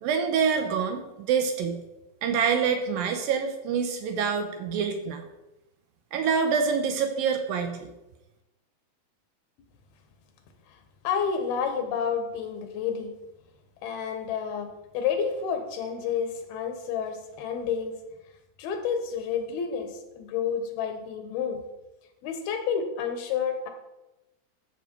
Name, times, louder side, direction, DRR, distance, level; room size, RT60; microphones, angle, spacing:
voice 1, 0.0-1.8 2.2-5.3 6.1-7.9, right 6 dB, 70° right, 6 dB, 2.4 m, -26 dB
voice 2, 11.0-13.1 13.8-18.0 18.6-21.6 22.2-23.7, left 7 dB, 75° left, 6 dB, 3.0 m, -30 dB
13.5 x 7.3 x 4.5 m, 0.97 s
omnidirectional pair, 4.6 m